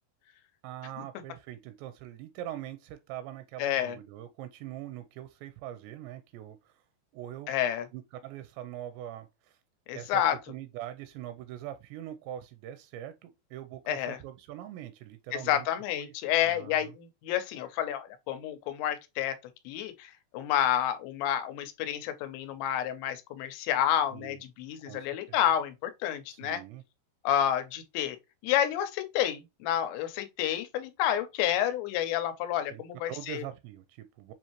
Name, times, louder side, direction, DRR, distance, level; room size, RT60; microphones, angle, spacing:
voice 1, 0.6-6.8 7.1-7.5 7.9-9.6 9.9-15.7 16.0-16.1 16.4-16.9 24.1-24.4 24.9-25.4 26.3-26.8 32.7-32.8 33.1-34.3, right 12 dB, 85° right, 2.7 m, -43 dB
voice 2, 3.6-4.0 7.5-7.9 9.9-10.4 13.9-14.2 15.3-19.4 19.7-26.6 27.2-28.2 28.4-33.4, left 11 dB, 90° left, 3.0 m, -29 dB
6.9 x 2.6 x 2.9 m
omnidirectional pair, 5.0 m